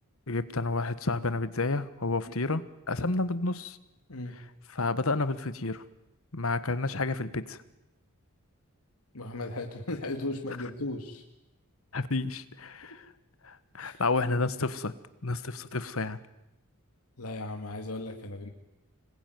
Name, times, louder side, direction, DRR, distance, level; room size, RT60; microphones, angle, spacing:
voice 1, 0.3-3.8 4.7-5.8 6.3-7.6 11.9-13.0 13.4-14.9 15.2-16.2, left 3 dB, 65° left, 14 dB, 1.4 m, -30 dB
voice 2, 4.1-4.4 9.1-11.2 13.8-14.0 17.2-18.5, left 2 dB, 85° left, 4 dB, 2.2 m, -36 dB
26.0 x 20.5 x 9.4 m, 0.94 s
head